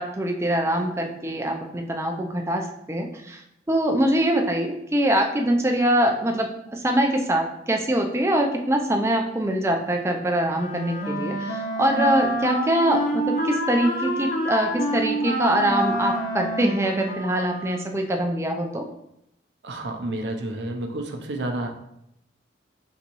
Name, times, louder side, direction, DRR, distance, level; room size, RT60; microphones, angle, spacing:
voice 1, 0.0-3.4 3.7-18.9, right 1 dB, 15° right, 2 dB, 0.4 m, -23 dB
Wind instrument woodwind instrument, 10.5-18.0, equal, 45° left, 0.6 m, -28 dB
voice 2, 19.6-21.7, right 1 dB, 65° right, 3 dB, 0.5 m, -30 dB
4.0 x 3.5 x 2.9 m, 0.79 s
head